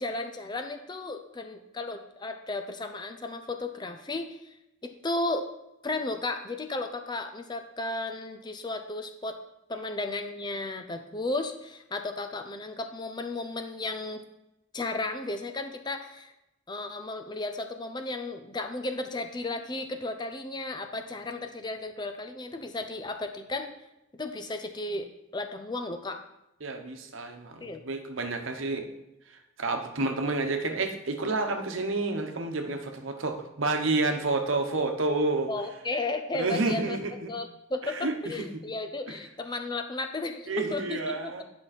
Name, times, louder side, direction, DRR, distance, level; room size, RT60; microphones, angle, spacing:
voice 1, 0.0-4.5 4.8-5.5 5.8-9.4 9.7-14.2 14.7-16.3 16.7-23.7 24.1-26.2 27.6-27.8 35.5-37.0 37.3-41.4, left 2 dB, 20° left, 6 dB, 0.5 m, -34 dB
voice 2, 26.6-28.9 29.3-35.5 36.4-37.3 37.9-38.2 39.1-39.2 40.5-41.4, right 3 dB, 75° right, 4 dB, 1.0 m, -29 dB
10.5 x 5.6 x 4.2 m, 0.90 s
head